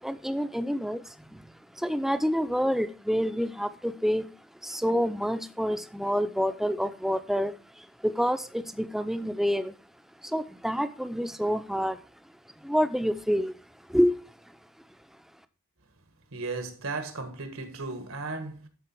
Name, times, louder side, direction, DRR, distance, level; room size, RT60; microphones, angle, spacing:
voice 1, 0.0-4.3 4.6-9.7 10.2-12.0 12.6-13.6 13.9-14.2, equal, ahead, 0.6 m, -28 dB
voice 2, 16.3-18.7, right 3 dB, 80° right, 1.8 m, -35 dB
12.5 x 4.4 x 4.4 m
head